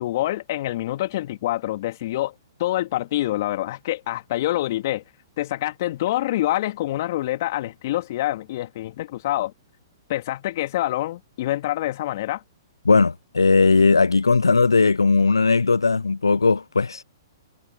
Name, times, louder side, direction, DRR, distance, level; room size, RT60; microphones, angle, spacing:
voice 1, 0.0-2.3 2.6-5.0 5.4-9.5 10.1-12.4, left 15 dB, 50° left, 2.9 m, -26 dB
voice 2, 12.8-17.0, left 4 dB, 85° left, 0.4 m, -18 dB
hypercardioid pair, 120°, 2 cm